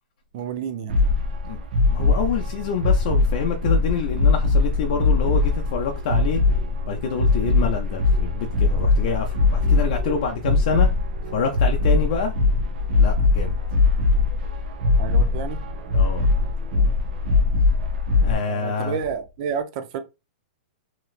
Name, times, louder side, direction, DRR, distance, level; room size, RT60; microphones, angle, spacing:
voice 1, 0.3-0.9 15.0-15.6 18.5-20.0, right 7 dB, 40° right, 0.5 m, -30 dB
sound 1, 0.9-18.3, left 3 dB, 60° right, 0.8 m, -21 dB
voice 2, 1.9-6.4 6.9-10.9 11.3-12.3 13.0-13.6 15.9-16.3 18.2-19.0, left 5 dB, 50° left, 0.6 m, -27 dB
3.1 x 2.9 x 2.4 m
hypercardioid pair, 160°, 5 cm